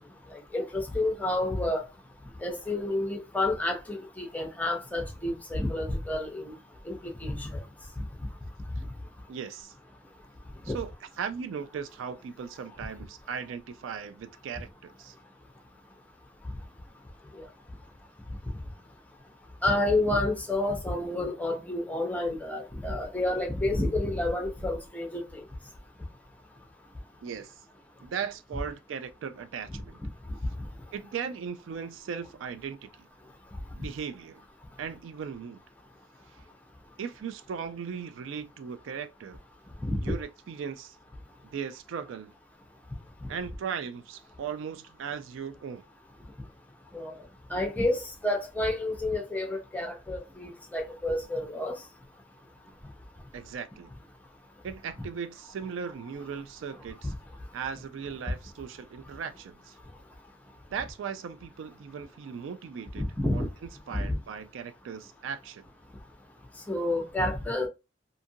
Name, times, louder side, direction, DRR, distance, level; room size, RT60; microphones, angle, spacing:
voice 1, 0.3-1.8 2.4-6.5 6.9-7.6 10.7-10.8 19.6-25.4 39.8-40.2 43.2-43.3 46.9-47.1 47.5-51.8 57.0-57.1 63.0-63.5 64.1-64.2 66.7-67.7, left 1 dB, 10° left, 0.6 m, -29 dB
voice 2, 9.3-9.7 10.6-10.9 11.2-15.2 27.2-27.6 28.0-30.0 30.9-33.1 33.7-34.4 34.8-35.6 37.0-39.4 40.0-41.0 41.5-42.3 43.3-45.8 53.3-53.9 54.6-57.1 57.5-59.8 60.7-63.0 63.3-63.4 63.9-65.6, right 7 dB, 70° right, 0.3 m, -38 dB
2.7 x 2.5 x 2.6 m
head